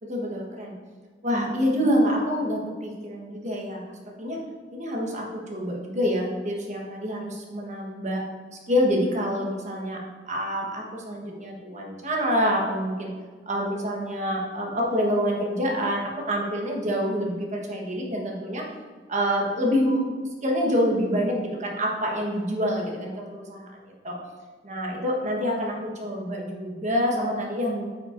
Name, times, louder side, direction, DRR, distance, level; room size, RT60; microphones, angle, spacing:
voice 1, 0.1-0.7 1.2-3.8 4.2-4.4 4.7-8.2 8.7-10.0 10.2-13.1 13.5-18.7 19.1-20.0 20.4-23.7 24.0-24.1 24.6-27.9, equal, 40° right, -1 dB, 1.2 m, -26 dB
8.6 x 5.4 x 2.6 m, 1.5 s
head